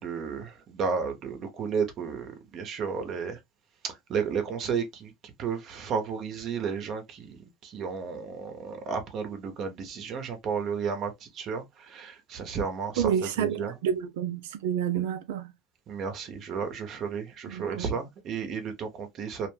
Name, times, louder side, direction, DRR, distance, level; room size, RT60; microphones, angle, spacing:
voice 1, 0.0-3.4 3.8-13.7 15.9-19.5, right 6 dB, 50° right, 0.8 m, -33 dB
voice 2, 13.0-15.5 17.5-17.9, right 9 dB, 80° right, 0.4 m, -29 dB
2.5 x 2.1 x 3.2 m
hypercardioid pair, 85°, 0 cm